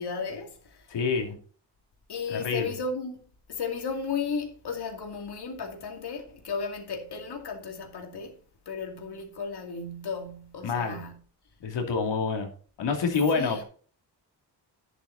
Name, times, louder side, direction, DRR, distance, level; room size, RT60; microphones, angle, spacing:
voice 1, 0.0-0.9 2.1-3.2 3.5-8.4 8.7-11.2 13.3-13.6, left 5 dB, 65° left, 2.5 m, -34 dB
voice 2, 0.9-1.4 2.3-2.7 10.6-11.0 11.6-12.5 12.8-13.6, left 5 dB, 85° left, 2.8 m, -27 dB
10.0 x 7.9 x 4.0 m
cardioid pair, 70°, 42 cm